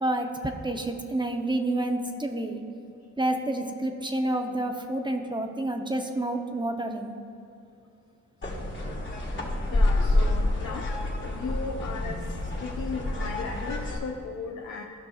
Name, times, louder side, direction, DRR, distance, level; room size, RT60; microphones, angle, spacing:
voice 1, 0.0-2.6 3.2-7.1, right 1 dB, 15° right, 4 dB, 0.7 m, -29 dB
sound 1, 8.4-14.0, left 2 dB, 40° left, 1.8 m, -28 dB
voice 2, 9.7-10.9 11.2-14.8, left 4 dB, 75° left, 0 dB, 0.8 m, -36 dB
15.5 x 6.0 x 2.4 m, 2.5 s
cardioid pair, 80°, 30 cm